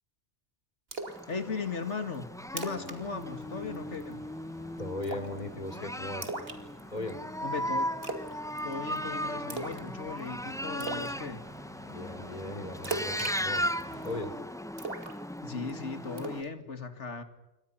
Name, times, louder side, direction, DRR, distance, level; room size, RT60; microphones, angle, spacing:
Splash splatter, 0.9-1.2 1.6-1.7 2.1-2.2 2.5-3.0 3.2-3.4 3.7-4.1 5.0-5.4 6.2-7.1 8.0-8.3 8.6-9.0 9.5-9.9 10.2-10.3 10.8-11.1 12.8-14.1 14.8-15.7 16.2-16.4, right 3 dB, 60° right, 2.8 m, -37 dB
sound 1, 1.1-16.4, equal, 5° left, 0.6 m, -37 dB
voice 1, 1.3-4.2 7.4-7.9 8.6-11.4 15.4-17.2, left 4 dB, 90° left, 9 dB, 2.4 m, -37 dB
sound 2, 2.7-14.2, right 1 dB, 20° right, 5.2 m, -54 dB
voice 2, 4.8-6.3 6.9-7.2 11.8-13.7 14.0-14.3, left 2 dB, 40° left, 10 dB, 3.2 m, -38 dB
28.0 x 25.0 x 5.8 m, 0.98 s
omnidirectional pair, 1.2 m